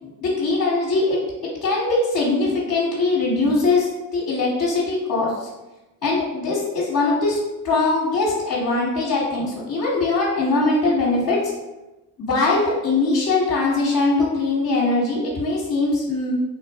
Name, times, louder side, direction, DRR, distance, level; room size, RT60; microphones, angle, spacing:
voice 1, 0.0-1.2 1.6-5.5 6.0-7.4 7.6-11.4 12.2-16.4, left 3 dB, 40° left, -6 dB, 1.3 m, -21 dB
3.7 x 2.5 x 3.4 m, 1.0 s
supercardioid pair, 75°, 48 cm